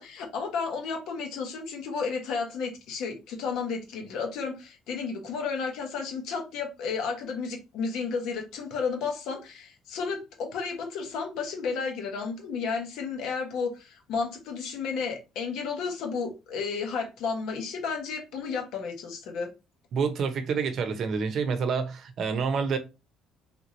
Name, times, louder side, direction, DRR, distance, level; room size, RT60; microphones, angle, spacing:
voice 1, 0.0-19.5, left 5 dB, 75° left, 1.2 m, -32 dB
voice 2, 19.9-22.8, right 5 dB, 55° right, 0.7 m, -28 dB
3.5 x 3.0 x 2.6 m
cardioid pair, 125°, 0 cm